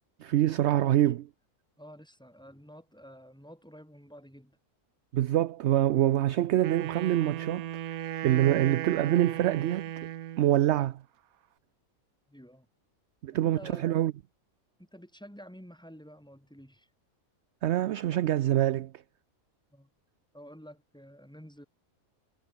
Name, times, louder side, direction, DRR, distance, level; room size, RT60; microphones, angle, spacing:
voice 1, 0.2-1.3 5.1-9.8 10.4-11.0 13.2-14.1 17.6-18.9, right 13 dB, 65° right, 0.7 m, -25 dB
voice 2, 0.8-1.1 1.8-4.6 12.3-12.7 13.3-13.8 14.8-16.9 19.7-19.9 20.3-21.7, equal, 5° left, 4.4 m, -50 dB
Wind instrument woodwind instrument, 6.6-10.6, right 12 dB, 80° right, 1.2 m, -36 dB
omnidirectional pair, 1.5 m